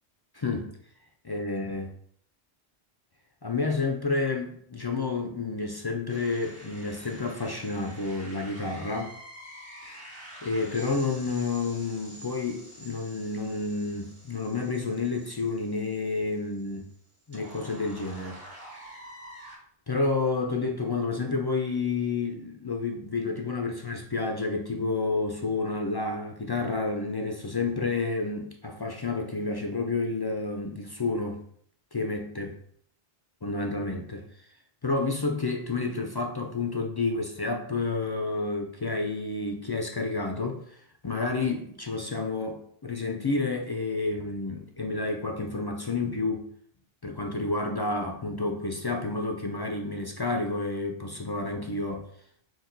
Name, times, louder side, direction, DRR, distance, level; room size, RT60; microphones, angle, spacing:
voice 1, 0.3-0.8 1.2-1.9 3.4-9.2 9.8-10.0 10.4-16.8 17.3-18.4 19.9-31.4 31.9-32.6 33.4-34.3 34.8-46.5 47.0-52.1, left 3 dB, 40° left, 3 dB, 0.3 m, -30 dB
sound 1, 6.1-19.6, right 1 dB, 70° right, 2.1 m, -47 dB
6.2 x 2.2 x 3.8 m, 0.64 s
omnidirectional pair, 1.0 m